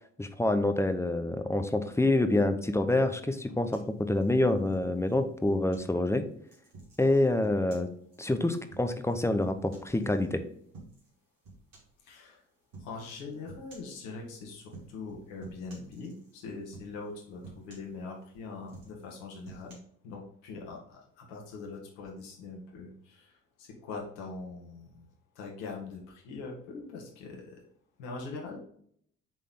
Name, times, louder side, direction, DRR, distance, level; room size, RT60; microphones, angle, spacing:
voice 1, 0.2-6.3 7.0-7.9 8.2-10.4, left 2 dB, 5° left, 7 dB, 0.7 m, -27 dB
sound 1, 3.7-5.9 6.5-10.3 10.7-11.1 11.4-12.0 12.7-13.0 13.5-14.0 14.6-15.1 15.4-16.4 16.7-17.1 17.4-18.3 18.6-19.7, right 3 dB, 65° right, 2.7 m, -51 dB
voice 2, 12.0-12.4 12.8-19.8 20.0-25.1 25.4-27.6 28.0-28.6, left 3 dB, 70° left, 0 dB, 1.7 m, -42 dB
7.0 x 3.8 x 3.7 m, 0.64 s
figure-of-eight pair, 50°, 37 cm